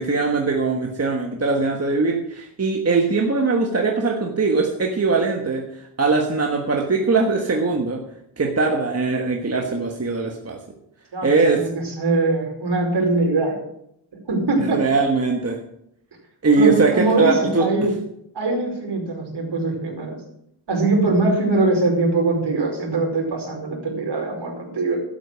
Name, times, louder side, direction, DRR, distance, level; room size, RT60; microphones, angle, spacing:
voice 1, 0.0-5.7 6.0-8.0 8.4-10.6 11.2-11.7 14.7-15.6 16.4-17.7, right 4 dB, 30° right, 1 dB, 1.4 m, -21 dB
voice 2, 11.1-13.5 14.3-14.8 16.6-17.9 18.3-20.2 20.7-25.0, right 2 dB, 60° right, 0 dB, 4.9 m, -22 dB
12.0 x 8.3 x 6.3 m, 0.76 s
wide cardioid pair, 100°, 46 cm